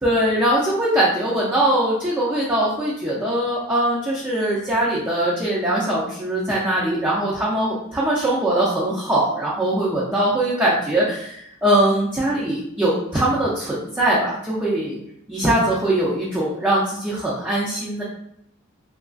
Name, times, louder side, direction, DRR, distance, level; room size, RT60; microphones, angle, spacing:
voice 1, 0.0-15.0 15.3-18.0, right 1 dB, 10° right, -7 dB, 0.5 m, -21 dB
2.9 x 2.4 x 2.4 m, 0.73 s
head